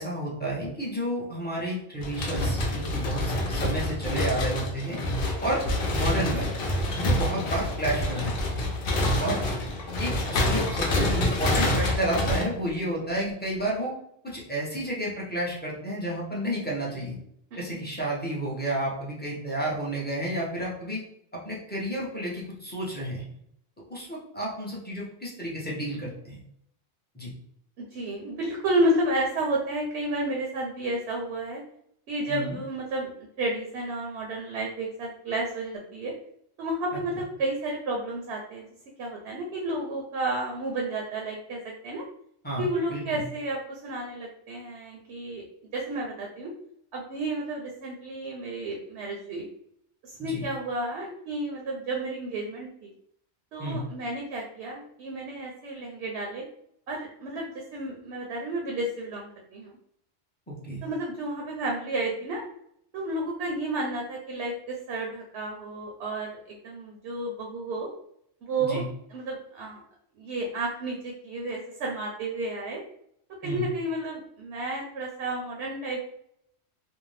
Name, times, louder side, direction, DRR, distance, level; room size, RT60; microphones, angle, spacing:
voice 1, 0.0-3.2 3.5-5.0 5.4-5.6 5.9-6.5 6.9-8.6 9.2-9.4 10.0-13.9 14.2-17.2 17.6-21.0 21.3-23.2 23.9-26.4 27.1-27.3 32.3-32.6 42.4-43.2 50.2-50.4 53.6-53.8 60.5-60.8 68.6-68.8 73.4-73.6, right 1 dB, 10° left, -5 dB, 0.5 m, -31 dB
sound 1, 2.0-12.4, left 1 dB, 60° left, 0.8 m, -27 dB
voice 2, 27.8-31.6 32.1-36.1 36.6-38.7 39.0-42.1 42.6-45.4 45.7-46.5 46.9-49.5 50.0-52.9 53.5-56.5 56.9-59.7 60.8-62.4 62.9-67.9 68.4-68.8 69.1-69.8 70.2-72.8 73.4-76.1, right 1 dB, 70° right, 0 dB, 0.8 m, -31 dB
2.6 x 2.0 x 3.1 m, 0.72 s
omnidirectional pair, 1.2 m